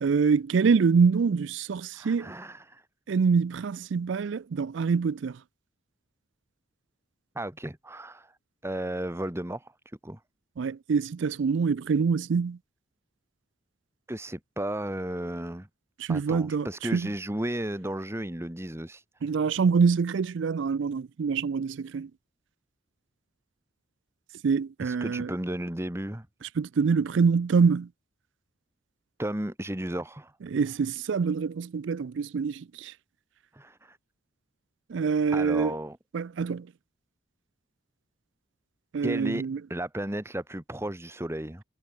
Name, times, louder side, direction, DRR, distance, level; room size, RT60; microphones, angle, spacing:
voice 1, 0.0-2.3 3.1-5.4 10.6-12.6 16.0-17.1 19.2-22.1 24.4-25.3 26.6-27.9 30.5-32.9 34.9-35.7 36.1-36.7 38.9-39.6, right 5 dB, 65° right, 0.4 m, -25 dB
voice 2, 1.9-2.8 7.3-8.3 8.6-9.7 10.0-10.2 14.1-15.7 16.1-19.0 24.8-26.3 29.2-30.3 33.5-34.0 35.3-36.0 39.0-41.6, right 1 dB, 15° right, 1.3 m, -34 dB
head